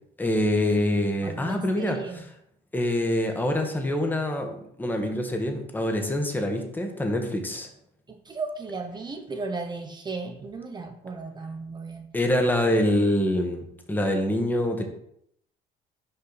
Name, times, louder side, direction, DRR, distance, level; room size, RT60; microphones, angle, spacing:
voice 1, 0.2-2.2 2.7-7.7 12.1-14.9, left 1 dB, 10° left, 4 dB, 1.1 m, -25 dB
voice 2, 1.2-2.2 8.1-12.1, right 3 dB, 25° right, 5 dB, 0.7 m, -35 dB
5.6 x 5.0 x 4.0 m, 0.72 s
cardioid pair, 110°, 17 cm